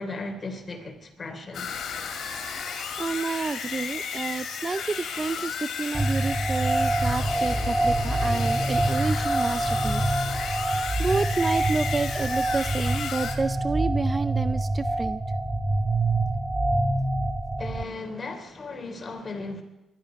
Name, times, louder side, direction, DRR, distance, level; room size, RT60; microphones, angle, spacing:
voice 1, 0.0-1.7 17.6-19.6, left 3 dB, 30° left, 3.5 m, -36 dB
sound 1, 1.5-13.4, left 6 dB, 65° left, 2.8 m, -33 dB
voice 2, 2.4-10.0 11.0-15.2, right 4 dB, 30° right, 0.5 m, -30 dB
sound 2, 5.9-17.8, right 2 dB, 10° right, 1.0 m, -26 dB
21.0 x 12.5 x 5.2 m
cardioid pair, 90°, 0 cm